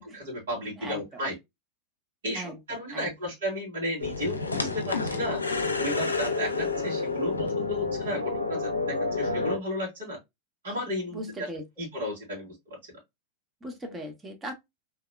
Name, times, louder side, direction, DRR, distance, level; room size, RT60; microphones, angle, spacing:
voice 1, 0.3-1.3 2.2-4.4 4.7-10.2 10.6-11.5 11.8-12.8, equal, 60° right, 2.4 m, -33 dB
voice 2, 2.3-3.1 11.1-11.6 13.6-14.5, equal, 15° right, 1.1 m, -39 dB
sound 1, 4.0-9.6, left 3 dB, 80° left, 0.6 m, -29 dB
3.6 x 2.9 x 2.3 m
figure-of-eight pair, 90°, 0 cm